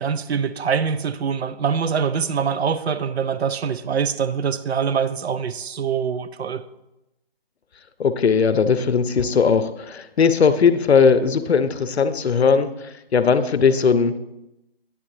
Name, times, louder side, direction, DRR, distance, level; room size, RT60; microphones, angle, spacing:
voice 1, 0.0-6.6, right 6 dB, 85° right, 13 dB, 0.5 m, -24 dB
voice 2, 8.0-14.2, left 5 dB, 90° left, 11 dB, 0.6 m, -18 dB
9.6 x 3.7 x 3.1 m, 0.91 s
figure-of-eight pair, 170°, 31 cm